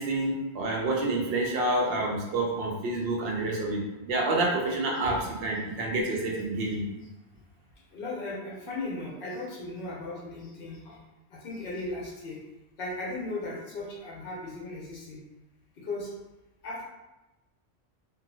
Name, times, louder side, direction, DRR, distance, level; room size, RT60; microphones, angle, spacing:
voice 1, 0.0-6.8, right 2 dB, 65° right, -1 dB, 0.8 m, -28 dB
voice 2, 7.9-11.0 11.4-12.4 12.8-15.2 15.8-16.1 16.6-16.8, left 2 dB, 60° left, -3 dB, 0.9 m, -36 dB
2.8 x 2.3 x 2.6 m, 1.0 s
omnidirectional pair, 1.1 m